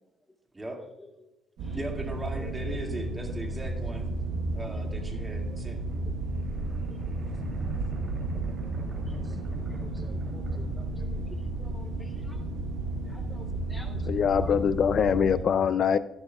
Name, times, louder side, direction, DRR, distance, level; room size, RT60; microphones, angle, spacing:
sound 1, 1.6-15.4, right 2 dB, 90° right, 1.2 m, -33 dB
voice 1, 1.7-4.1 4.5-5.8 9.2-9.4 9.9-10.0, right 1 dB, 20° right, 1 dB, 2.2 m, -38 dB
sound 2, 5.9-11.8, right 1 dB, 50° right, 2.9 m, -43 dB
voice 2, 9.5-12.4 13.0-14.0 14.4-14.5, left 1 dB, 10° left, 4 dB, 0.8 m, -50 dB
voice 3, 14.1-16.0, left 7 dB, 60° left, 14 dB, 0.3 m, -23 dB
12.5 x 11.0 x 2.3 m, 1.0 s
cardioid pair, 90°, 0 cm